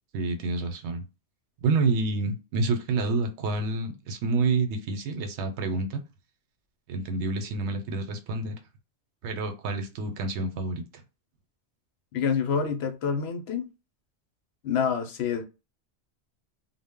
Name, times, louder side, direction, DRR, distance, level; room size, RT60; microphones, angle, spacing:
voice 1, 0.1-1.0 1.6-6.0 6.9-8.6 9.2-11.0, right 3 dB, 85° right, 0.9 m, -28 dB
voice 2, 12.1-13.7 14.6-15.4, left 6 dB, 70° left, 0.8 m, -27 dB
2.1 x 2.0 x 3.5 m
omnidirectional pair, 1.2 m